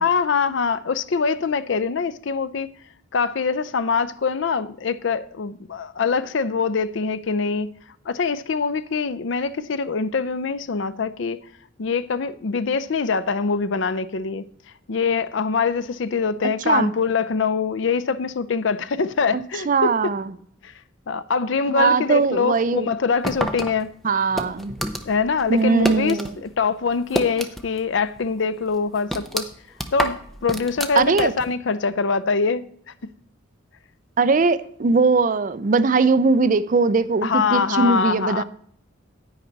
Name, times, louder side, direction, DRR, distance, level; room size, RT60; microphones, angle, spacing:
voice 1, 0.0-2.8 3.1-7.7 8.1-11.4 11.8-14.4 14.9-20.1 20.6-20.7 21.1-23.9 25.0-29.5 29.9-32.7 37.2-38.4, left 5 dB, 65° left, 0.5 m, -24 dB
voice 2, 19.7-20.3 21.7-22.9 24.0-24.7 25.5-26.3 31.0-31.3 34.2-38.4, right 4 dB, 40° right, 0.4 m, -20 dB
sound 1, 23.2-26.3 26.6-27.9 28.2-28.3 28.7-31.5, equal, ahead, 0.6 m, -28 dB
10.0 x 8.8 x 3.9 m
head